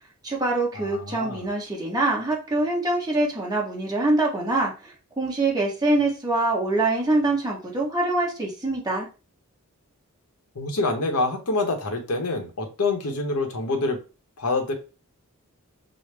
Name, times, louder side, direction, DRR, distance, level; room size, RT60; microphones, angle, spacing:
voice 1, 0.2-9.1, right 2 dB, 15° right, -3 dB, 1.0 m, -24 dB
voice 2, 0.7-1.4 10.5-14.0 14.4-14.7, left 3 dB, 85° left, 4 dB, 0.9 m, -26 dB
6.1 x 2.0 x 3.3 m, 0.33 s
head